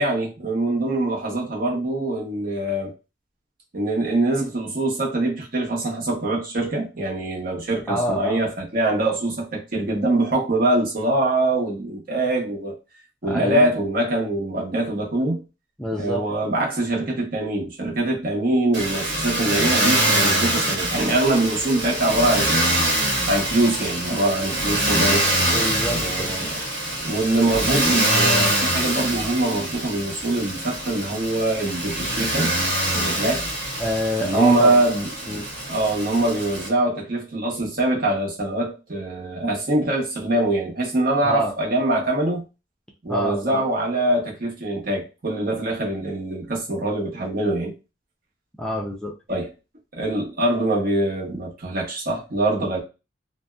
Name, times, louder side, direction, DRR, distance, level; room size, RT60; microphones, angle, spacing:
voice 1, 0.0-2.9 3.7-12.7 13.2-15.4 16.0-22.8 23.3-25.2 25.9-26.6 27.0-32.5 32.9-33.5 34.2-42.4 43.0-47.8 49.3-49.5 49.9-52.8, right 2 dB, 50° right, 0.8 m, -23 dB
voice 2, 7.9-8.4 13.2-13.7 15.8-16.5 25.4-26.3 33.8-34.8 35.3-35.5 41.2-41.5 43.1-43.6 48.6-49.1, equal, 5° left, 0.4 m, -27 dB
Motor vehicle (road), 18.7-36.7, right 1 dB, 70° right, 1.3 m, -24 dB
2.6 x 2.1 x 2.2 m
head